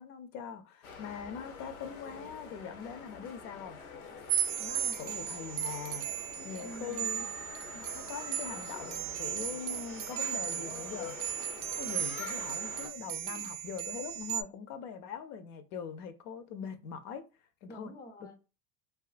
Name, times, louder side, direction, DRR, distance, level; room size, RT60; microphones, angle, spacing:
voice 1, 0.0-3.8 4.6-6.1 6.4-7.3 7.7-11.2 11.8-17.2 17.6-17.9, left 7 dB, 55° left, 0.5 m, -42 dB
sound 1, 0.8-12.9, left 5 dB, 90° left, 0.7 m, -46 dB
sound 2, 4.3-14.4, right 10 dB, 80° right, 0.6 m, -36 dB
voice 2, 4.9-5.3 6.6-7.3 13.2-13.5 17.7-18.4, right 1 dB, 10° left, 0.4 m, -49 dB
2.5 x 2.4 x 2.4 m
hypercardioid pair, 100°, 42 cm